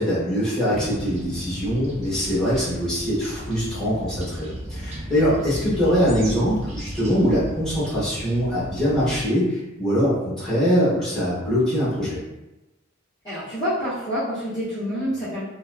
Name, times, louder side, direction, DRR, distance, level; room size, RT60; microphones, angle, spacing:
voice 1, 0.0-12.2, equal, 5° left, -11 dB, 1.1 m, -23 dB
sound 1, 0.7-9.3, equal, 30° right, 0.4 m, -34 dB
voice 2, 13.2-15.4, equal, 20° left, -14 dB, 0.7 m, -27 dB
2.8 x 2.1 x 2.3 m, 0.98 s
head